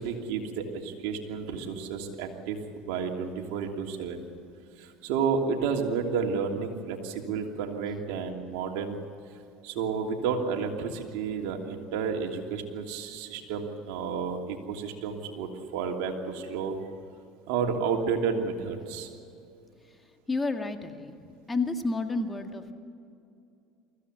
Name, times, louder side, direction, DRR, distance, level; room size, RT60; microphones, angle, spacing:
voice 1, 0.0-2.6 2.8-4.2 4.8-9.0 9.6-16.8 17.5-19.1, right 6 dB, 75° right, 2 dB, 2.9 m, -31 dB
voice 2, 20.3-21.2 21.5-22.7, left 3 dB, 15° left, 5 dB, 1.9 m, -30 dB
24.0 x 15.5 x 8.1 m, 2.6 s
supercardioid pair, 95°, 0 cm